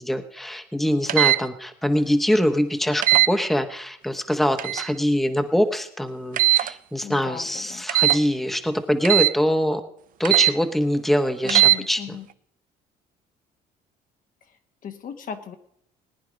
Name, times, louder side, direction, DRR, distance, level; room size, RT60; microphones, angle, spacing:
voice 1, 0.0-9.8 10.2-12.0, equal, ahead, 7 dB, 1.1 m, -23 dB
sound 1, 1.1-1.4 3.0-3.3 4.6-4.9 6.4-6.7 7.9-8.2 9.1-9.3 10.3-10.5 11.5-11.8, right 15 dB, 55° right, 0.5 m, -18 dB
voice 2, 7.0-7.8 11.4-12.3 14.8-15.5, left 7 dB, 55° left, 7 dB, 1.4 m, -37 dB
19.0 x 9.6 x 5.2 m, 0.73 s
cardioid pair, 110°, 17 cm